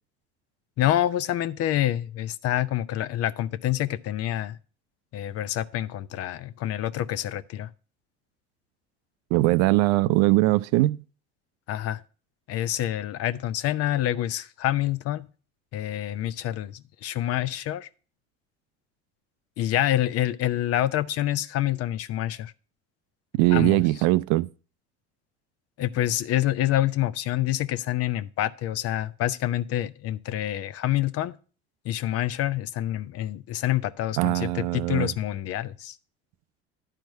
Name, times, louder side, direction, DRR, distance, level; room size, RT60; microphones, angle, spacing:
voice 1, 0.8-4.6 5.1-7.7 11.7-12.0 12.5-15.3 15.7-17.9 19.6-22.5 23.5-23.8 25.8-31.3 31.8-36.0, left 13 dB, 45° left, 0.6 m, -27 dB
voice 2, 9.3-11.0 23.3-24.5 34.2-35.1, right 19 dB, 60° right, 0.5 m, -21 dB
10.5 x 4.6 x 5.4 m
hypercardioid pair, 70°, 33 cm